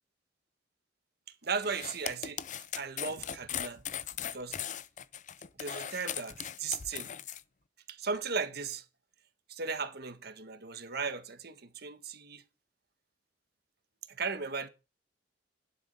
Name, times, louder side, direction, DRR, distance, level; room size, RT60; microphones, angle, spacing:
voice 1, 1.4-2.4 2.8-3.8 4.2-4.6 5.6-7.1 7.9-8.8 9.5-12.4 14.2-14.7, right 5 dB, 55° right, 1.5 m, -36 dB
sound 1, 1.6-7.4, left 9 dB, 40° left, 0.5 m, -38 dB
11.0 x 7.1 x 5.5 m
head